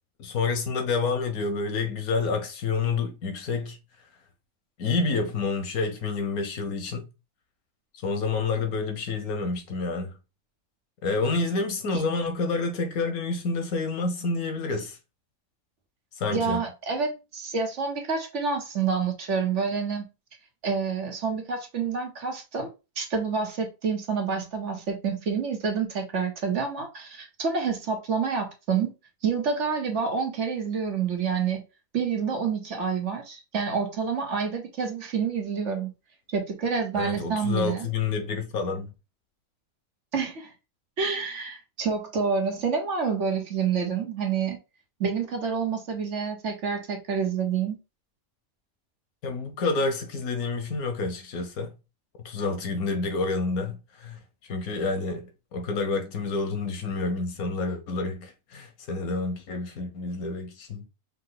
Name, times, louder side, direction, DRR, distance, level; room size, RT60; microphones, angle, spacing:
voice 1, 0.2-3.8 4.8-7.1 8.0-10.1 11.0-15.0 16.2-16.6 36.9-38.9 49.2-51.7 52.2-54.2 54.5-60.8, left 4 dB, 85° left, 1.5 m, -28 dB
voice 2, 16.3-20.1 20.6-22.7 23.0-28.9 29.2-31.6 31.9-35.9 36.3-37.9 40.1-40.5 41.0-44.6 45.0-47.8, right 5 dB, 55° right, 1.4 m, -28 dB
5.5 x 2.3 x 3.8 m
omnidirectional pair, 1.5 m